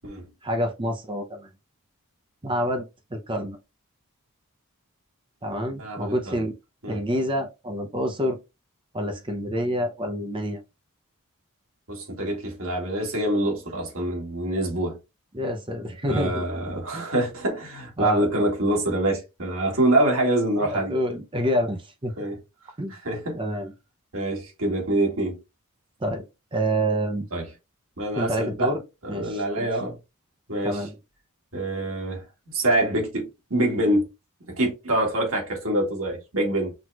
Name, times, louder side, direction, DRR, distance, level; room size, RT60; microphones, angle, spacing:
voice 1, 0.4-1.5 2.4-2.8 3.1-3.6 5.4-6.5 6.9-8.4 8.9-10.6 15.3-16.4 16.9-17.1 18.0-18.3 20.6-22.1 22.8-22.9 23.3-23.7 26.0-26.2 26.5-27.3 28.1-28.8 29.1-29.7 30.6-30.9, equal, 20° right, 0.6 m, -27 dB
voice 2, 5.8-6.4 6.8-7.0 11.9-15.0 16.1-20.9 22.2-22.4 23.0-23.4 24.1-25.4 27.3-27.4 28.0-28.7 29.0-30.0 30.5-30.8 31.5-32.2 32.5-34.1 34.5-36.7, right 1 dB, 65° right, 2.0 m, -25 dB
6.0 x 3.0 x 2.3 m
head